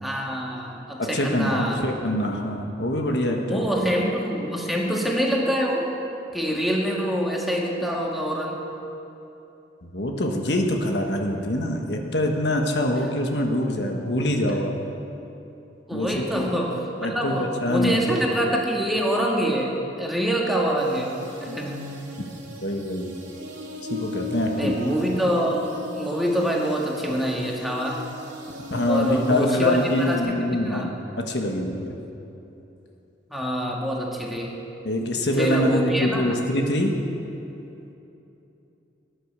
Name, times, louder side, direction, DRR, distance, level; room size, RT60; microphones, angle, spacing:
voice 1, 0.0-1.8 3.5-5.9 6.3-8.6 15.9-21.1 21.4-21.9 24.6-25.6 26.0-28.0 28.9-30.2 30.5-30.9 33.3-34.5 35.4-36.4, equal, ahead, -2 dB, 1.8 m, -25 dB
voice 2, 1.0-3.7 9.8-14.7 15.9-16.5 17.0-18.1 21.5-21.6 22.6-23.1 23.9-24.8 28.7-30.9 31.3-32.0 34.8-36.9, left 1 dB, 65° left, 2 dB, 1.4 m, -24 dB
sound 1, 20.8-30.2, left 1 dB, 90° right, 2.8 m, -36 dB
17.5 x 10.5 x 6.8 m, 2.9 s
head